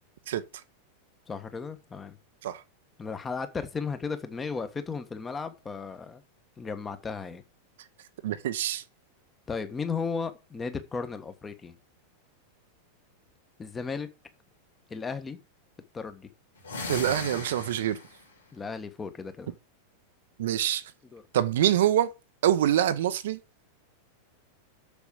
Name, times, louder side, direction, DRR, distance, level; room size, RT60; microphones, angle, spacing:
voice 1, 1.3-2.2 3.0-6.2 6.6-7.4 9.5-11.7 13.6-14.1 14.9-15.4 15.9-16.3 18.5-19.5 21.1-21.2, left 5 dB, 15° left, 1.4 m, -35 dB
voice 2, 8.2-8.8 16.9-18.0 20.4-20.8 21.3-22.1 22.4-23.4, right 11 dB, 55° right, 0.7 m, -25 dB
sound 1, 16.6-18.2, left 2 dB, 70° left, 3.1 m, -36 dB
7.1 x 7.0 x 6.7 m
figure-of-eight pair, 90°, 0 cm